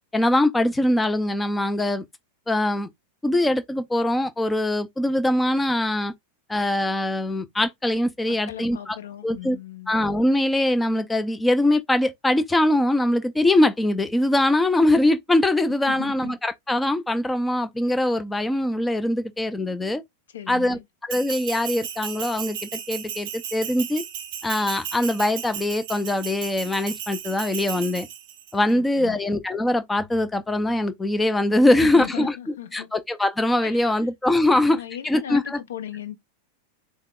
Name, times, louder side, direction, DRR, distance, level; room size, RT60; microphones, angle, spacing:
voice 1, 0.1-2.0 2.5-2.9 3.2-6.1 6.5-9.0 9.2-9.6 9.9-20.0 20.5-20.8 21.1-24.0 24.4-28.1 28.5-32.3 32.7-35.6, left 1 dB, 10° left, 0.4 m, -22 dB
voice 2, 8.3-9.9 15.9-16.4 20.3-20.8 28.7-29.2 31.7-32.9 33.6-34.0 34.5-36.2, left 11 dB, 65° left, 0.5 m, -37 dB
Bell, 21.1-28.5, right 9 dB, 50° right, 0.6 m, -35 dB
3.6 x 2.0 x 3.5 m
figure-of-eight pair, 90°, 0 cm